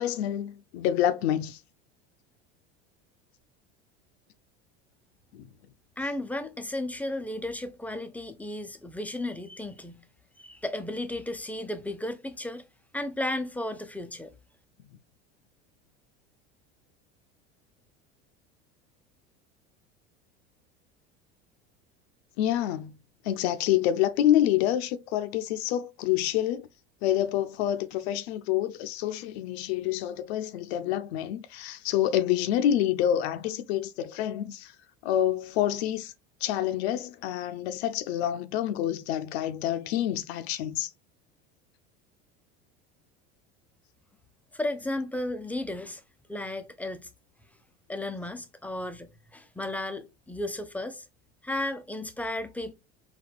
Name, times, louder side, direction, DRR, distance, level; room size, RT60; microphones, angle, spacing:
voice 1, 0.0-1.6 5.3-5.5 22.4-22.9 23.2-26.7 27.0-34.7 35.0-36.1 36.4-40.9, left 11 dB, 75° left, 0.5 m, -27 dB
voice 2, 6.0-10.0 10.4-12.6 12.9-14.3 44.5-46.0 46.3-47.1 47.9-51.0 51.4-52.7, left 1 dB, 5° left, 0.3 m, -34 dB
4.1 x 2.3 x 2.2 m
hypercardioid pair, 90°, 32 cm